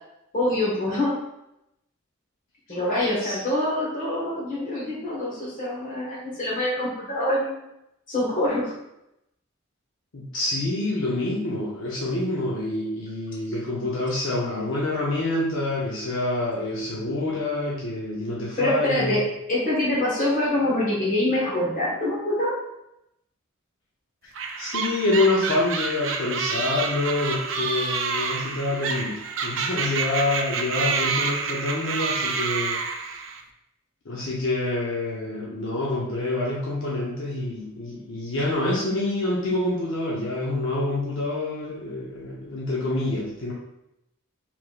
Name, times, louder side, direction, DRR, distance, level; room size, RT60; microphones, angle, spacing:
voice 1, 0.3-1.1 2.7-7.7 8.1-8.7 18.6-19.2 19.5-22.5, left 1 dB, 40° left, -5 dB, 1.4 m, -25 dB
voice 2, 10.1-19.2 24.6-32.8 34.0-43.5, left 2 dB, 65° left, -5 dB, 0.7 m, -27 dB
sound 1, 24.3-33.4, right 5 dB, 65° right, 0.5 m, -28 dB
4.6 x 3.6 x 2.5 m, 0.86 s
head